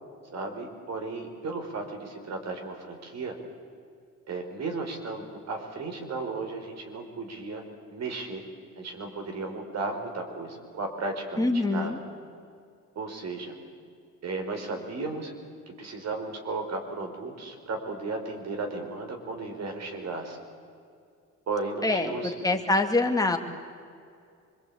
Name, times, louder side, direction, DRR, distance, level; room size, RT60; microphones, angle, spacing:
voice 1, 0.3-3.4 4.3-7.6 7.9-8.4 8.8-12.0 12.9-13.5 14.2-15.3 15.8-20.4 21.5-22.6, right 3 dB, 60° right, 4 dB, 4.8 m, -35 dB
voice 2, 11.4-12.0 21.8-22.1 22.4-23.4, left 2 dB, 10° left, 3 dB, 2.7 m, -24 dB
25.5 x 22.5 x 8.8 m, 2.4 s
cardioid pair, 90°, 30 cm